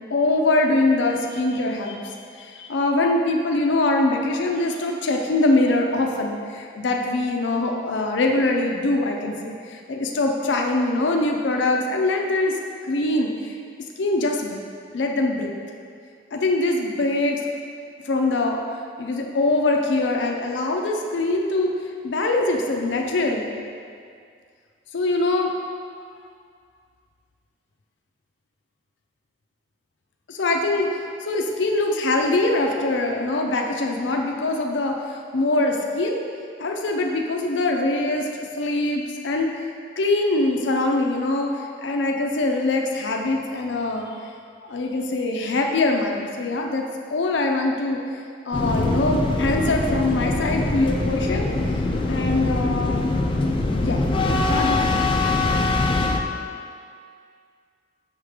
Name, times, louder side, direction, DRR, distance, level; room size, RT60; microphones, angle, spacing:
voice 1, 0.1-12.6 12.9-13.6 14.0-14.6 14.9-15.5 16.3-17.5 18.0-18.6 19.0-21.7 22.0-23.5 24.9-25.6 30.3-36.2 36.6-39.5 40.0-41.5 41.8-44.1 44.6-46.8 47.1-48.0 48.5-51.5 52.1-53.0 53.8-54.0 54.5-55.0, left 2 dB, 85° left, 2 dB, 0.5 m, -23 dB
sound 1, 48.5-56.2, left 2 dB, 30° left, 0.4 m, -23 dB
6.4 x 3.5 x 4.9 m, 2.2 s
head